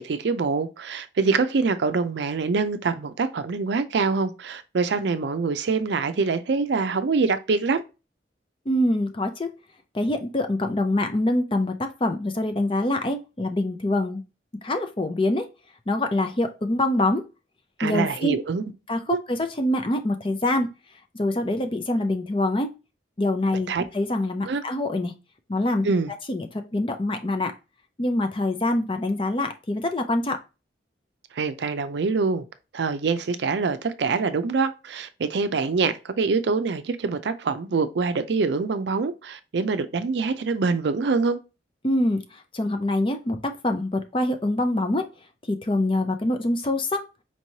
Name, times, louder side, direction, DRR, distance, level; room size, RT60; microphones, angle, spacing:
voice 1, 0.0-7.8 17.8-18.7 19.1-19.2 23.7-23.8 24.4-24.6 25.8-26.1 31.3-32.4 32.7-41.4, right 4 dB, 70° right, 0.4 m, -25 dB
voice 2, 8.7-9.5 9.9-14.2 14.6-15.5 15.9-17.2 17.8-18.3 18.9-19.0 19.3-20.7 21.2-22.7 23.2-25.1 25.5-25.9 26.3-27.5 28.0-30.4 41.8-45.0 45.5-47.0, left 1 dB, 30° left, 0.5 m, -25 dB
4.4 x 3.0 x 2.7 m
head